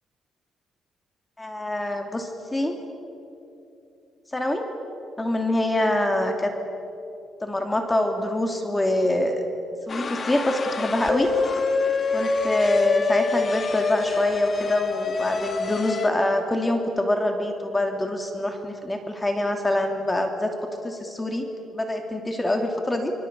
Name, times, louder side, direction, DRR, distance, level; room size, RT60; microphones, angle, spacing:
voice 1, 1.4-2.8 4.3-4.6 5.2-6.5 7.4-9.4 9.9-11.3 12.1-20.5 20.8-23.1, left 1 dB, 15° left, 5 dB, 2.8 m, -25 dB
sound 1, 9.9-16.1, left 4 dB, 40° left, 2.0 m, -26 dB
25.5 x 24.0 x 8.3 m, 2.9 s
cardioid pair, 90°, 0 cm